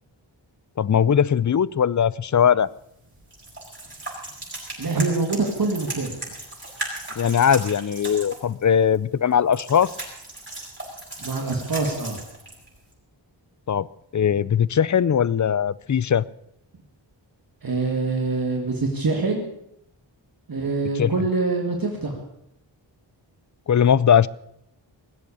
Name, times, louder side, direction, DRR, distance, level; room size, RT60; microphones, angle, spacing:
voice 1, 0.8-2.7 7.2-9.9 13.7-13.9 14.1-16.3 21.0-21.1 23.7-24.3, left 8 dB, 40° left, 21 dB, 0.5 m, -20 dB
sound 1, 2.6-12.9, right 2 dB, 25° right, 7.1 m, -37 dB
voice 2, 4.8-6.2 11.2-12.2 17.6-19.5 20.5-22.2, right 3 dB, 50° right, 1 dB, 2.3 m, -25 dB
20.5 x 8.2 x 8.6 m, 0.78 s
wide cardioid pair, 105°, 46 cm